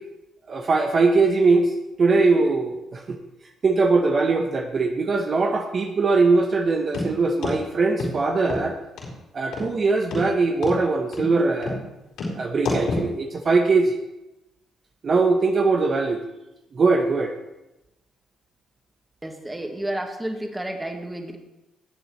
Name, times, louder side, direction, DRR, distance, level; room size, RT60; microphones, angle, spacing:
voice 1, 0.5-1.7 2.0-3.2 3.6-8.8 9.3-11.8 12.3-14.0 15.0-16.2 16.7-17.3, right 3 dB, 45° right, 3 dB, 1.1 m, -21 dB
sound 1, 6.9-7.1 7.4-7.6 8.0-8.1 8.5-8.6 9.0-9.1 9.5-9.7 10.1-10.2 10.6-10.8 11.1-11.3 11.6-11.8 12.2-12.3 12.6-13.1, left 2 dB, 80° left, 4.4 m, -27 dB
voice 2, 19.2-21.4, right 1 dB, 10° right, 3 dB, 1.7 m, -31 dB
18.0 x 7.9 x 3.2 m, 0.94 s
cardioid pair, 90°, 0 cm